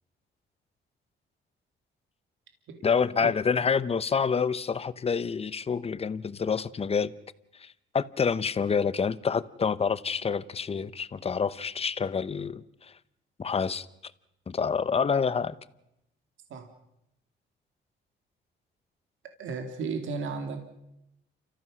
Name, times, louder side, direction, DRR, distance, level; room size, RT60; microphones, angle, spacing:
voice 1, 2.8-7.1 7.6-12.6 13.4-13.9 14.5-15.5, left 6 dB, 30° left, 0.8 m, -27 dB
voice 2, 19.4-20.8, right 4 dB, 75° right, 2.4 m, -34 dB
29.5 x 14.5 x 6.2 m
cardioid pair, 90°, 20 cm